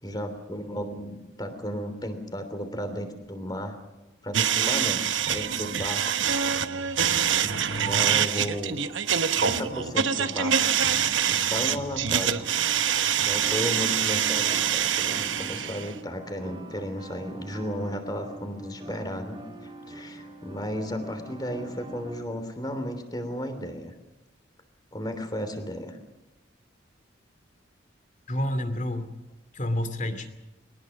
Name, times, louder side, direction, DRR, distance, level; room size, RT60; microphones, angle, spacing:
voice 1, 0.0-3.8 4.2-6.2 7.0-8.8 9.4-10.7 11.2-12.4 12.8-23.9 24.9-26.0, equal, 20° left, 8 dB, 3.2 m, -34 dB
sound 1, 4.3-15.9, right 8 dB, 75° right, 1.0 m, -25 dB
sound 2, 7.3-22.2, right 2 dB, 25° right, 2.2 m, -45 dB
voice 2, 28.3-29.1 29.5-30.3, left 1 dB, 40° left, 9 dB, 2.5 m, -29 dB
22.5 x 19.5 x 6.5 m, 1.1 s
head